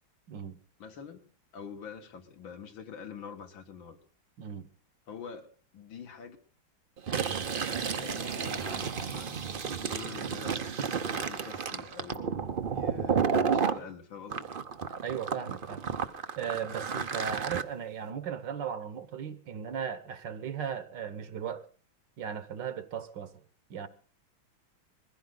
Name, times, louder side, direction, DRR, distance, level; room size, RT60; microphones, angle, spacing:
voice 1, 0.8-1.2 1.5-4.0 5.1-6.4 7.9-9.5 9.8-12.4 12.7-14.5, left 6 dB, 75° left, 2.4 m, -46 dB
voice 2, 4.4-4.7 15.0-15.9 16.4-21.7 22.2-23.4 23.7-23.9, right 8 dB, 65° right, 1.7 m, -37 dB
Fill (with liquid), 7.0-13.8 14.3-17.6, right 6 dB, 50° right, 0.6 m, -32 dB
21.0 x 15.5 x 3.9 m
omnidirectional pair, 2.2 m